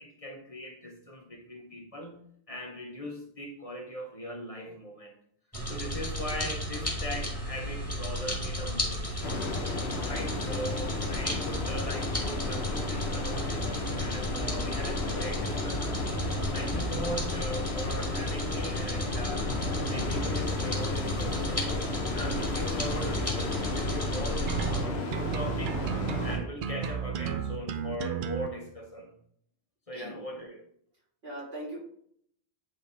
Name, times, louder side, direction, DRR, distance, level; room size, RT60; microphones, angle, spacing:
voice 1, 0.0-2.2 2.5-5.1 5.7-9.1 10.0-16.0 16.5-19.5 19.9-25.8 26.2-29.1 29.9-30.6, equal, 35° left, 1 dB, 1.0 m, -39 dB
sound 1, 5.5-24.8, equal, 15° left, 1.8 m, -33 dB
sound 2, 9.2-26.4, left 3 dB, 85° left, 1.2 m, -34 dB
sound 3, 24.5-28.5, right 8 dB, 60° right, 0.6 m, -32 dB
voice 2, 31.2-31.8, right 1 dB, 80° right, -5 dB, 3.4 m, -40 dB
9.0 x 3.5 x 4.0 m, 0.66 s
omnidirectional pair, 1.1 m